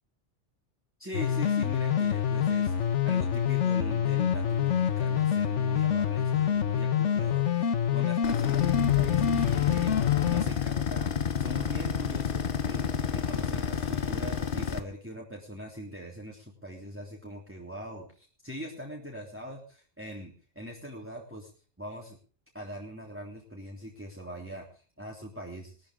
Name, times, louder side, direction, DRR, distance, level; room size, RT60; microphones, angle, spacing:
voice 1, 1.0-11.1 11.4-21.5 21.8-22.2 22.5-25.9, equal, 10° right, -1 dB, 3.4 m, -42 dB
sound 1, 1.1-10.4, left 9 dB, 85° left, 1.4 m, -26 dB
sound 2, 8.2-14.8, left 8 dB, 50° left, 1.0 m, -30 dB
sound 3, 9.3-14.8, right 1 dB, 55° right, 6.0 m, -47 dB
20.5 x 13.5 x 3.7 m, 0.40 s
omnidirectional pair, 1.2 m